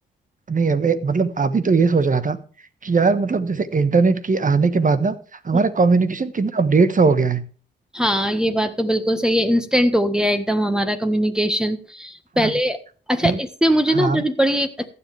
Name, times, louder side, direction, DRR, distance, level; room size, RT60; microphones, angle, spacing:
voice 1, 0.5-2.4 2.8-5.2 5.4-7.4 12.3-12.5 13.2-13.4 13.9-14.2, right 4 dB, 40° right, 12 dB, 1.5 m, -19 dB
voice 2, 7.9-12.8 13.1-14.9, equal, 5° right, 6 dB, 1.5 m, -21 dB
15.5 x 9.8 x 3.5 m, 0.40 s
supercardioid pair, 50°, 21 cm